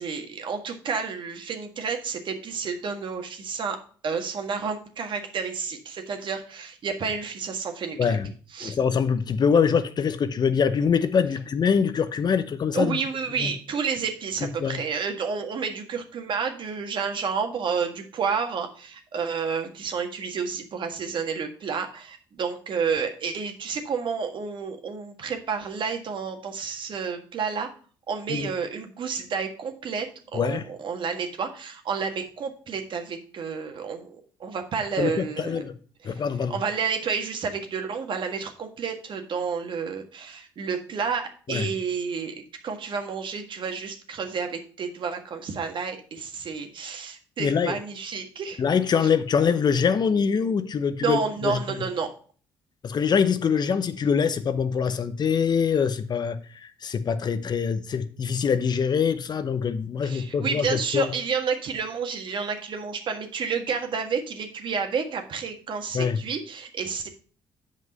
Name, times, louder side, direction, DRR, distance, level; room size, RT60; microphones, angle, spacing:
voice 1, 0.0-3.8 4.0-8.1 8.5-8.8 12.7-27.7 28.1-30.1 30.3-35.6 36.0-36.2 36.5-42.3 42.6-48.6 51.0-52.1 60.0-67.1, right 6 dB, 55° right, 1.7 m, -30 dB
voice 2, 8.0-8.3 8.6-13.0 13.4-13.5 14.4-14.8 28.3-28.5 30.3-30.7 35.0-35.7 36.0-36.6 41.5-41.7 47.4-47.8 48.6-51.8 52.8-61.1 65.9-66.2, left 6 dB, 45° left, 0.8 m, -24 dB
7.7 x 5.3 x 5.3 m
supercardioid pair, 60°, 10 cm